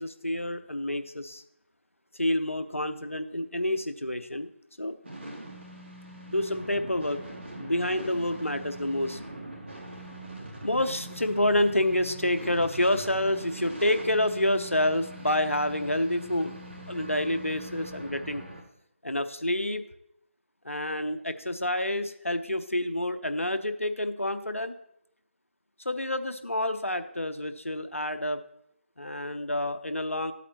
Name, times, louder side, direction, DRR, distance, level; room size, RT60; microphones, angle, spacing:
voice 1, 0.0-1.4 2.1-4.5 4.8-5.0 6.3-7.2 7.5-9.2 10.6-16.5 16.9-18.4 19.0-19.8 20.6-24.8 25.8-28.4 29.0-30.3, left 1 dB, 85° left, 9 dB, 0.7 m, -28 dB
sound 1, 5.0-18.6, right 1 dB, 60° right, 2.8 m, -42 dB
14.0 x 8.4 x 2.8 m, 0.77 s
figure-of-eight pair, 155°, 7 cm